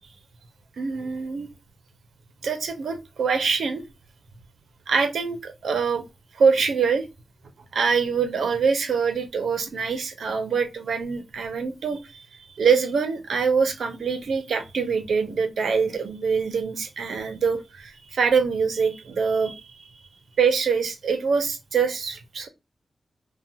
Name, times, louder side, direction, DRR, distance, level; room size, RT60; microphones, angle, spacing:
voice 1, 0.8-1.5 2.4-3.8 4.9-6.0 6.3-7.1 7.7-19.9 20.4-22.5, right 5 dB, 90° right, 0.6 m, -24 dB
2.8 x 2.1 x 2.5 m
cardioid pair, 80°, 0 cm